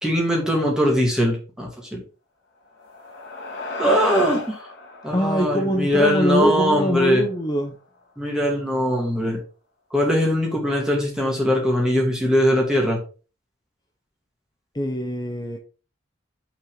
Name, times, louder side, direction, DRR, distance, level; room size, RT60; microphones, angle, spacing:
voice 1, 0.0-2.0 3.8-4.6 5.0-7.2 8.2-9.4 9.9-13.0, equal, 5° right, 2.3 m, -21 dB
sound 1, 2.7-7.4, left 3 dB, 60° left, 2.7 m, -35 dB
voice 2, 5.1-7.7 14.7-15.6, equal, 20° left, 0.9 m, -23 dB
6.2 x 4.5 x 4.9 m
head